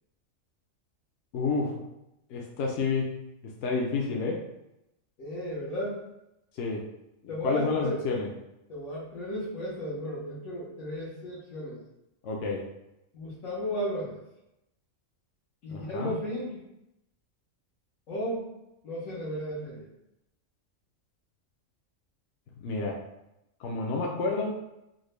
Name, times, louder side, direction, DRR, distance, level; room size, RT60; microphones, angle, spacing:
voice 1, 1.3-1.8 2.3-4.4 6.6-6.9 7.2-8.3 12.2-12.7 15.7-16.1 22.6-23.0 23.6-24.6, left 4 dB, 70° left, -1 dB, 0.9 m, -30 dB
voice 2, 5.2-6.0 7.3-8.0 8.7-11.8 13.1-14.2 15.6-16.6 18.1-18.4 18.8-19.9, equal, 90° left, -9 dB, 1.3 m, -34 dB
3.8 x 2.1 x 3.1 m, 0.87 s
omnidirectional pair, 1.4 m